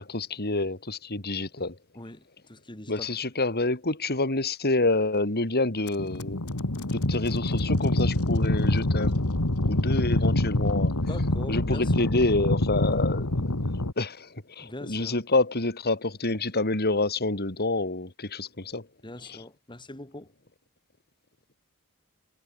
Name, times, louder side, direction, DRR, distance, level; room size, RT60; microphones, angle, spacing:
voice 1, 0.0-1.8 2.9-6.4 6.9-9.1 9.7-10.9 11.5-13.5 14.0-18.9 19.2-19.4, left 2 dB, 45° left, 4.1 m, -27 dB
voice 2, 1.9-3.1 11.1-12.1 14.6-15.1 19.0-20.3, left 1 dB, 20° left, 3.0 m, -41 dB
sound 1, 5.9-13.9, left 1 dB, 80° left, 2.1 m, -26 dB
head